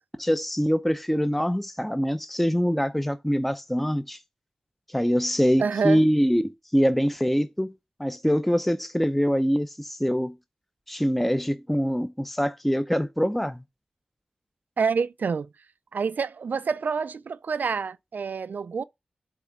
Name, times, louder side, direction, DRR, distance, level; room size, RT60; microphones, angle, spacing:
voice 1, 0.2-4.2 4.9-7.7 8.0-10.4 10.9-13.6, equal, 5° left, 0.6 m, -24 dB
voice 2, 5.6-6.0 14.8-15.5 15.9-18.8, right 5 dB, 75° right, 0.3 m, -27 dB
8.3 x 3.2 x 4.8 m
wide cardioid pair, 70°, 3 cm